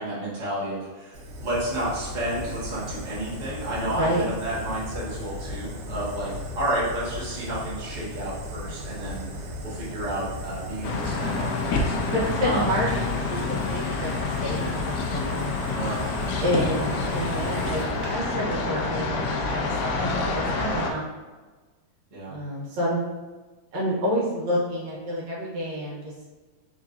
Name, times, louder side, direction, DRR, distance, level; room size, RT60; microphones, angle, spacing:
voice 1, 0.0-9.3 9.6-12.0 12.4-12.7 15.7-16.7 22.1-22.3, right 1 dB, 40° right, -8 dB, 0.6 m, -31 dB
Fire, 1.1-18.1, left 1 dB, 85° right, 2.3 m, -36 dB
voice 2, 3.8-4.2 12.1-15.5 16.4-21.0 22.3-23.0 23.7-26.1, equal, 70° right, -5 dB, 2.3 m, -29 dB
sound 1, 10.8-20.9, left 3 dB, 85° left, 1.5 m, -28 dB
4.9 x 3.7 x 2.6 m, 1.3 s
omnidirectional pair, 3.4 m